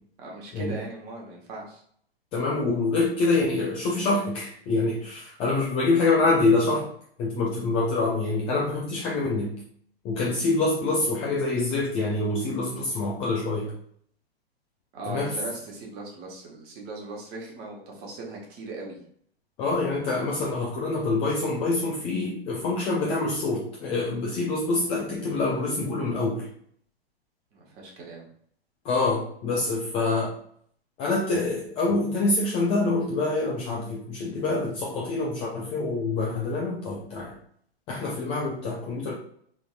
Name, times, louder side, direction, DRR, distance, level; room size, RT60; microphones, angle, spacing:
voice 1, 0.2-1.8 14.9-19.0 27.5-28.3, right 3 dB, 30° right, -1 dB, 1.0 m, -39 dB
voice 2, 2.3-6.9 7.2-9.5 10.0-13.7 15.1-15.4 19.6-26.5 28.8-30.3 31.0-37.3 37.9-39.1, left 3 dB, 20° left, -3 dB, 0.3 m, -26 dB
3.5 x 2.6 x 2.4 m, 0.63 s
hypercardioid pair, 110°, 31 cm